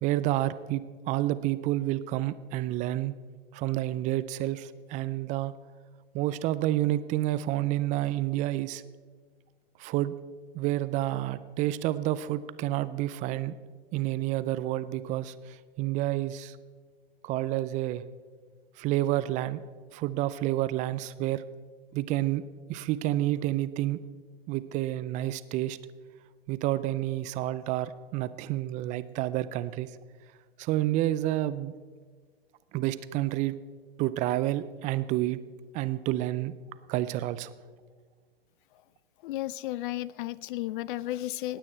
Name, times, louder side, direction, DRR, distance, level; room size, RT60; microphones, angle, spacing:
voice 1, 0.0-3.2 3.5-5.5 6.1-8.8 9.8-10.1 10.5-13.5 13.9-16.6 17.2-18.0 18.8-19.6 19.9-21.4 21.9-22.4 22.7-24.0 24.5-25.8 26.5-29.9 30.6-31.7 32.7-33.5 34.0-35.4 35.7-36.5 36.9-37.5, right 15 dB, 25° right, 15 dB, 0.4 m, -29 dB
voice 2, 39.2-41.6, left 15 dB, 55° left, 21 dB, 0.5 m, -33 dB
19.0 x 8.8 x 4.4 m, 1.5 s
hypercardioid pair, 115°, 30 cm